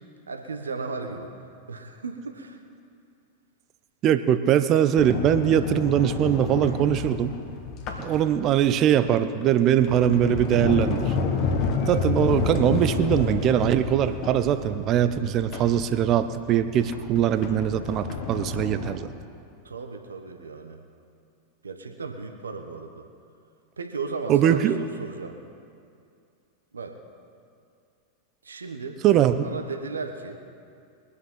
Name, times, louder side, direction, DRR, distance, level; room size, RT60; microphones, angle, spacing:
voice 1, 0.3-1.3 1.7-2.6 8.1-8.3 19.6-20.8 21.6-23.0 23.8-25.4 26.7-27.0 28.4-29.0 29.4-30.4, right 4 dB, 75° right, 5 dB, 1.3 m, -35 dB
voice 2, 4.0-7.3 8.0-11.1 11.9-19.1 24.3-24.8 29.0-29.5, right 10 dB, 35° right, 12 dB, 0.6 m, -22 dB
Sliding door, 5.0-8.8 9.4-19.0, left 4 dB, 40° left, 1.4 m, -30 dB
22.5 x 8.4 x 5.6 m, 2.4 s
figure-of-eight pair, 90°, 0 cm